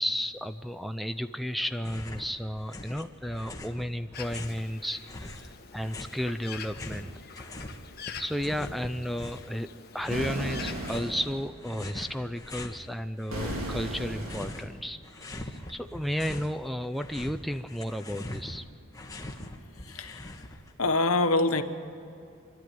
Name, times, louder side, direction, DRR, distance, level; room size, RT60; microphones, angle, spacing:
voice 1, 0.0-7.1 8.2-18.6, equal, ahead, 7 dB, 0.4 m, -33 dB
sound 1, 1.7-2.3 2.6-4.7 5.1-7.8 8.1-9.5 10.0-11.2 11.6-12.8 13.2-14.7 15.0-16.5 16.8-20.7, left 1 dB, 15° left, 1.3 m, -42 dB
Bird, 4.1-11.0, left 7 dB, 45° left, 1.3 m, -45 dB
sound 2, 10.1-11.5 13.3-14.7, right 1 dB, 75° right, 3.0 m, -35 dB
voice 2, 19.9-20.2 20.8-21.6, left 2 dB, 80° left, 8 dB, 1.2 m, -25 dB
27.0 x 12.0 x 9.4 m, 2.6 s
head